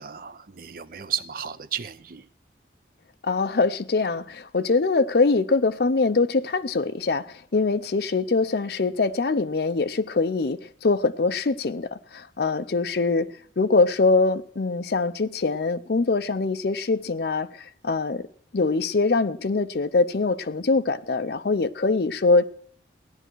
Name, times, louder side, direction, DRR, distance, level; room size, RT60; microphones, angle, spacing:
voice 1, 0.0-2.3, right 8 dB, 50° right, 0.6 m, -33 dB
voice 2, 3.2-13.3 13.6-18.3 18.5-22.5, left 3 dB, 60° left, 0.5 m, -23 dB
15.5 x 10.0 x 4.6 m
head